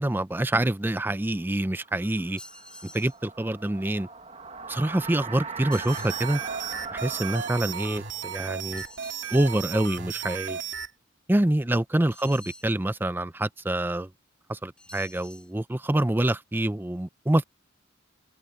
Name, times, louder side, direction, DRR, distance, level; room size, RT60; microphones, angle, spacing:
voice 1, 0.0-2.4 2.8-4.1 4.7-6.4 6.9-8.8 9.3-10.6 11.3-14.1 14.5-17.4, right 1 dB, 10° right, 0.4 m, -26 dB
sound 1, 1.3-10.1, right 5 dB, 35° right, 1.3 m, -41 dB
sound 2, 2.4-3.2 5.7-6.2 8.8-9.5 12.1-12.7 14.8-15.5, left 1 dB, 5° left, 3.0 m, -47 dB
sound 3, 5.9-10.9, right 7 dB, 65° right, 2.5 m, -35 dB
head